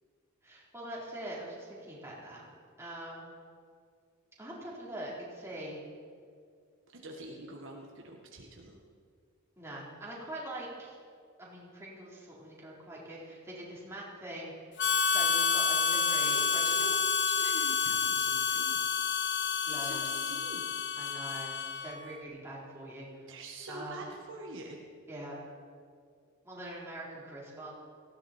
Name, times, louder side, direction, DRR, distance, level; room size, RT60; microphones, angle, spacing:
voice 1, 0.4-2.4 2.8-3.2 4.4-5.8 9.6-11.0 11.4-16.7 19.7-20.1 21.0-21.5 21.8-23.3 23.7-24.0 25.1-25.4 26.4-27.7, right 1 dB, 15° right, -6 dB, 4.0 m, -43 dB
voice 2, 6.9-8.8 15.9-16.0 16.3-19.2 19.7-20.8 23.3-24.8, right 2 dB, 60° right, 0 dB, 1.7 m, -45 dB
Harmonica, 14.8-22.1, left 6 dB, 55° left, 0.8 m, -29 dB
18.5 x 15.5 x 4.5 m, 2.1 s
head